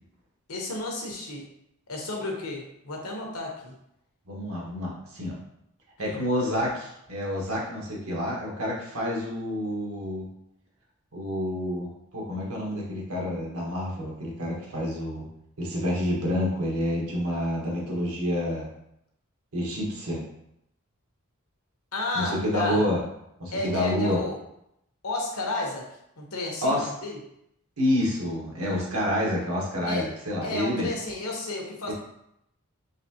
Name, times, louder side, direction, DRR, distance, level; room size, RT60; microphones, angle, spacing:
voice 1, 0.5-1.5 1.9-3.7 6.0-6.2 21.9-22.8 23.5-24.4 25.0-25.9 26.2-27.2 29.8-30.1 30.4-31.9, left 2 dB, 85° left, 0 dB, 1.0 m, -32 dB
voice 2, 4.3-5.4 6.0-10.3 11.1-15.2 15.6-18.7 19.5-20.2 22.1-23.0 23.4-24.2 26.6-26.9 27.8-30.9 31.9-32.0, left 1 dB, 85° right, -3 dB, 1.2 m, -28 dB
4.1 x 3.4 x 2.8 m, 0.79 s
head